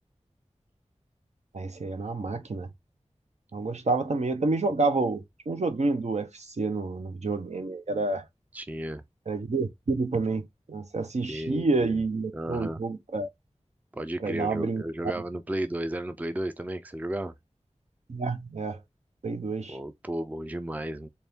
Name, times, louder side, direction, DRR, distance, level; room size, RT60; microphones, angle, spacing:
voice 1, 1.5-2.7 3.5-8.2 9.3-13.3 14.2-14.8 18.1-18.8 19.2-19.8, right 3 dB, 70° right, 0.7 m, -29 dB
voice 2, 8.5-9.0 11.3-12.0 12.3-12.8 13.9-17.3 19.7-21.1, right 1 dB, 15° right, 0.4 m, -33 dB
4.2 x 2.3 x 3.4 m
wide cardioid pair, 65°, 12 cm